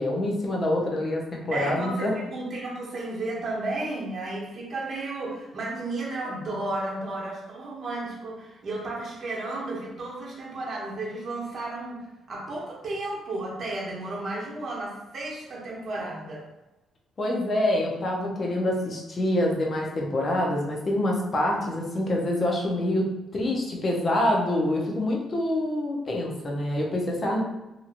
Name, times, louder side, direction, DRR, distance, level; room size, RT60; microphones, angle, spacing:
voice 1, 0.0-2.1 17.2-23.1 23.3-27.4, left 1 dB, 40° left, -1 dB, 0.7 m, -26 dB
voice 2, 1.5-16.5, right 2 dB, 50° right, -4 dB, 0.9 m, -33 dB
2.9 x 2.7 x 2.5 m, 1.0 s
cardioid pair, 85°, 0 cm